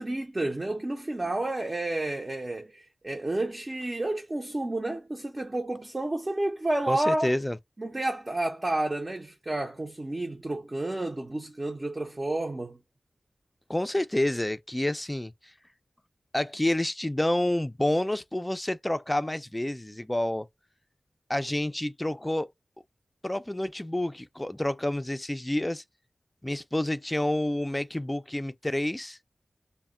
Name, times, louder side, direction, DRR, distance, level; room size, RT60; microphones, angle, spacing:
voice 1, 0.0-7.3 7.8-12.8, right 2 dB, 40° right, 0.5 m, -30 dB
voice 2, 6.9-7.6 13.7-15.5 16.3-20.5 21.3-22.5 23.2-25.8 26.4-29.2, left 1 dB, 15° left, 0.3 m, -29 dB
2.1 x 2.1 x 3.6 m
cardioid pair, 45°, 0 cm